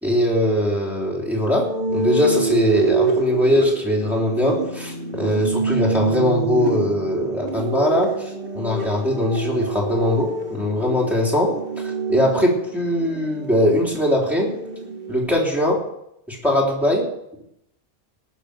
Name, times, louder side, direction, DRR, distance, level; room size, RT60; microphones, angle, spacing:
voice 1, 0.0-14.5 15.1-15.8 16.3-17.1, left 1 dB, ahead, -2 dB, 3.4 m, -21 dB
sound 1, 1.6-15.3, right 4 dB, 60° right, 2.3 m, -27 dB
19.5 x 6.9 x 6.8 m, 0.78 s
omnidirectional pair, 1.0 m